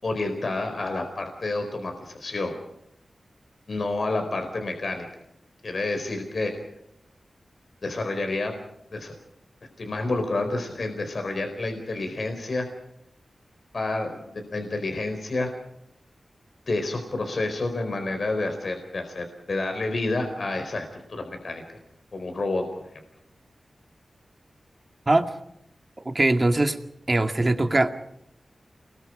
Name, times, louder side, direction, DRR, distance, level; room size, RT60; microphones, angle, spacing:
voice 1, 0.0-2.5 3.7-5.1 5.6-6.5 7.8-8.6 8.9-9.1 9.8-12.7 13.7-15.5 16.7-21.6 22.1-22.7, left 2 dB, 60° left, 5 dB, 4.4 m, -29 dB
voice 2, 26.1-26.8 27.1-27.9, right 2 dB, 30° right, 6 dB, 2.2 m, -21 dB
29.5 x 22.0 x 5.0 m, 0.79 s
wide cardioid pair, 80°, 0 cm